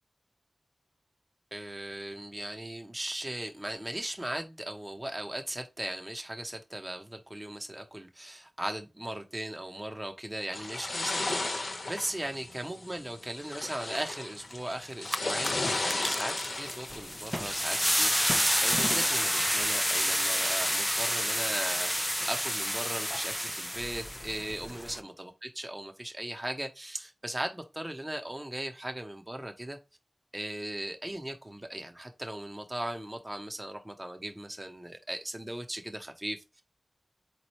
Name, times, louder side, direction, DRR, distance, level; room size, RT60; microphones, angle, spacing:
voice 1, 1.5-11.6 11.9-29.8 30.3-36.6, right 1 dB, 20° right, 0.8 m, -38 dB
sound 1, 10.5-19.6, left 2 dB, 75° left, 1.0 m, -36 dB
sound 2, 14.5-14.6 14.9-25.0, equal, ahead, 0.4 m, -29 dB
4.0 x 3.1 x 4.2 m
wide cardioid pair, 50°, 0 cm